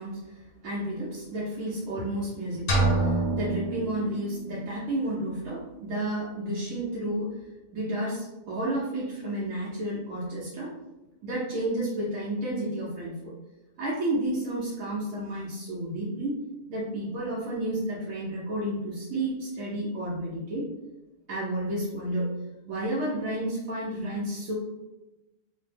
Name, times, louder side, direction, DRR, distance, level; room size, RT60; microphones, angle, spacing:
voice 1, 0.0-7.4 7.7-10.7 11.2-13.3 13.8-16.4 16.7-20.7 21.3-22.4 22.6-24.5, right 1 dB, 90° right, -8 dB, 1.2 m, -31 dB
sound 1, 2.7-4.6, right 2 dB, 90° left, 1.3 m, -26 dB
3.2 x 2.1 x 3.3 m, 1.0 s
omnidirectional pair, 1.4 m